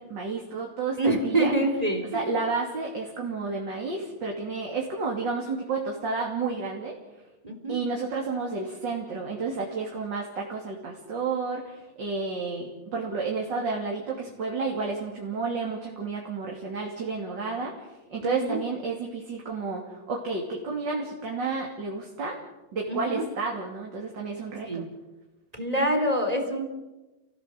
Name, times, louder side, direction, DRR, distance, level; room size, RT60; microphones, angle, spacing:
voice 1, 0.0-1.5 2.1-6.9 7.7-22.4 22.7-24.8, right 4 dB, 35° right, -2 dB, 3.3 m, -31 dB
voice 2, 1.0-2.4 7.4-7.7 18.2-18.6 22.9-23.2 24.6-24.9 25.5-26.6, right 1 dB, 10° right, 4 dB, 3.5 m, -26 dB
29.0 x 18.0 x 7.8 m, 1.1 s
omnidirectional pair, 3.5 m